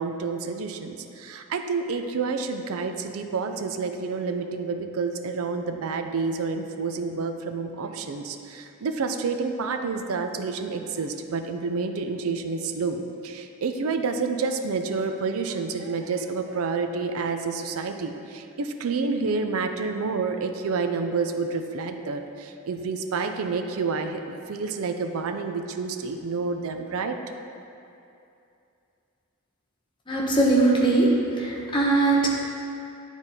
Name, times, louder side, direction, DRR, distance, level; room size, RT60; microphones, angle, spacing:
voice 1, 0.0-27.2, right 4 dB, 75° right, 6 dB, 0.5 m, -29 dB
voice 2, 30.1-31.1 31.3-32.4, right 2 dB, 20° left, -4 dB, 0.8 m, -21 dB
9.7 x 4.1 x 3.5 m, 2.7 s
head